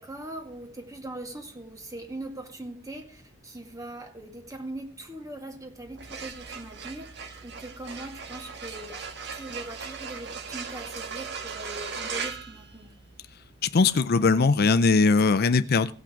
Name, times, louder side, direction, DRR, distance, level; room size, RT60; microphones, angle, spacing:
voice 1, 0.0-12.9, right 1 dB, 15° right, 2.1 m, -41 dB
sound 1, 5.9-13.3, right 5 dB, 60° right, 1.6 m, -38 dB
voice 2, 13.6-15.9, left 4 dB, 50° left, 0.5 m, -20 dB
17.5 x 5.9 x 5.1 m
head